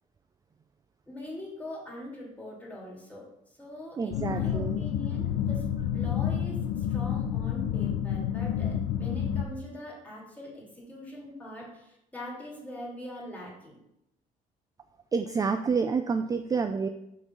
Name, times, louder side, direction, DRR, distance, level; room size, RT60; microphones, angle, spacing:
voice 1, 1.1-5.6 5.9-13.8, left 1 dB, 10° left, -4 dB, 2.3 m, -42 dB
voice 2, 4.0-4.8 15.1-16.9, right 5 dB, 20° right, 8 dB, 0.3 m, -28 dB
sound 1, 4.1-9.4, left 9 dB, 85° left, 0.5 m, -29 dB
6.0 x 3.9 x 5.3 m, 0.82 s
cardioid pair, 110°, 17 cm